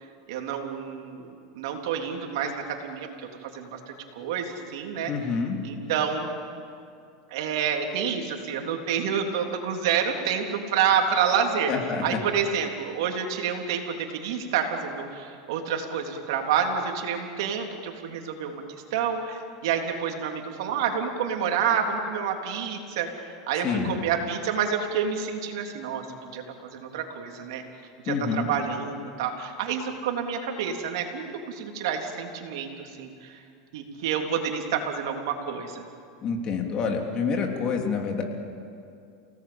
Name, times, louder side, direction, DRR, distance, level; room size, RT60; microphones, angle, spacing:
voice 1, 0.3-3.1 3.4-5.1 5.6-6.3 7.3-11.7 12.0-27.6 28.0-33.4 33.7-35.8, right 7 dB, 75° right, 3 dB, 3.5 m, -28 dB
voice 2, 5.1-5.6 11.7-12.2 23.6-24.0 28.1-28.5 36.2-38.2, left 5 dB, 35° left, 2 dB, 3.4 m, -27 dB
28.5 x 18.0 x 8.9 m, 2.5 s
supercardioid pair, 130°, 2 cm